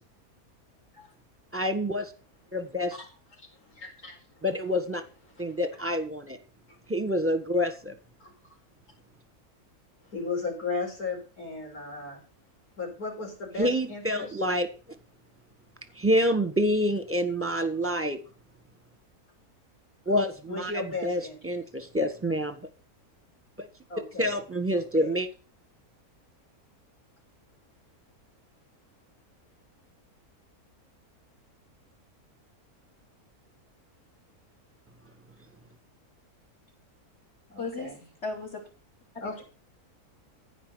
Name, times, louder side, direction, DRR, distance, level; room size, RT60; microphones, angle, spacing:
voice 1, 1.5-2.1 2.5-3.0 4.4-5.0 5.4-6.4 6.9-7.9 13.6-14.7 16.0-18.2 20.1-22.6 23.6-23.7 24.2-25.3, equal, 10° right, 9 dB, 1.3 m, -27 dB
voice 2, 3.4-4.4 5.3-5.6 6.7-6.8 8.2-8.3 10.1-12.2 12.8-14.4 20.5-21.6 23.9-24.4 24.7-25.2 37.5-38.1 39.2-39.4, left 3 dB, 75° left, 0 dB, 5.2 m, -36 dB
voice 3, 37.6-37.9 38.2-38.6 39.2-39.4, left 3 dB, 45° left, 3 dB, 4.7 m, -35 dB
15.5 x 5.2 x 8.0 m, 0.36 s
omnidirectional pair, 1.6 m